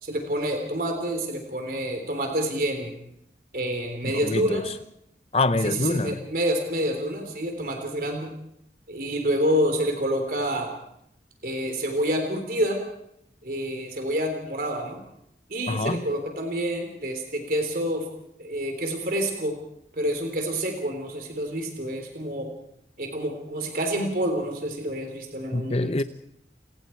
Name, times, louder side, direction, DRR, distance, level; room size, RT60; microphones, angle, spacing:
voice 1, 0.0-2.9 3.5-4.7 5.6-8.3 8.9-10.7 11.4-12.8 13.4-15.0 15.5-18.1 18.4-19.6 19.9-22.5 23.0-25.9, right 1 dB, 50° right, 3.8 m, -28 dB
voice 2, 4.2-4.7 5.3-6.2 15.7-16.0 25.5-26.0, left 2 dB, 35° left, 0.8 m, -25 dB
29.5 x 19.0 x 4.6 m
head